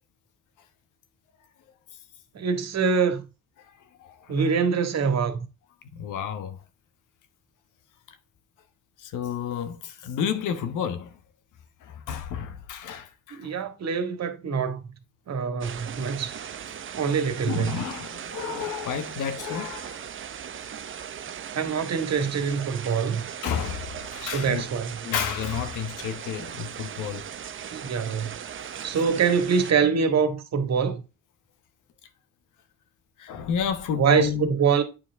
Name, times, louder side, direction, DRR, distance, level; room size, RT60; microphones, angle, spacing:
voice 1, 2.3-3.2 4.3-5.5 13.3-14.8 15.3-16.3 16.9-17.7 21.5-23.2 24.2-25.0 27.7-28.3 28.8-31.0 34.0-34.8, right 6 dB, 60° right, 1.8 m, -24 dB
voice 2, 4.0-4.5 5.9-6.6 8.1-8.2 9.0-11.2 11.8-13.5 17.5-20.0 20.4-20.6 23.4-24.7 25.0-27.2 28.8-28.9 33.2-34.5, left 7 dB, 85° left, 1.2 m, -31 dB
sound 1, 15.6-29.7, right 8 dB, 40° right, 0.7 m, -38 dB
8.9 x 4.8 x 3.5 m
cardioid pair, 90°, 30 cm